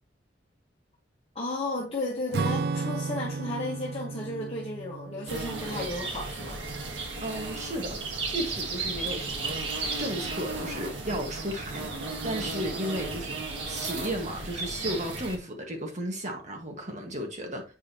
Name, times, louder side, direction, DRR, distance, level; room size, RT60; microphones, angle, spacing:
voice 1, 1.3-6.6, left 2 dB, 35° left, 1.4 m, -34 dB
Acoustic guitar / Strum, 2.3-7.1, right 4 dB, 60° right, 0.4 m, -34 dB
sound 1, 5.3-15.4, right 3 dB, 80° right, 1.6 m, -34 dB
voice 2, 7.2-8.0 8.3-9.5 9.9-13.3 13.7-17.6, equal, 40° right, 1.7 m, -34 dB
7.6 x 5.0 x 3.0 m
head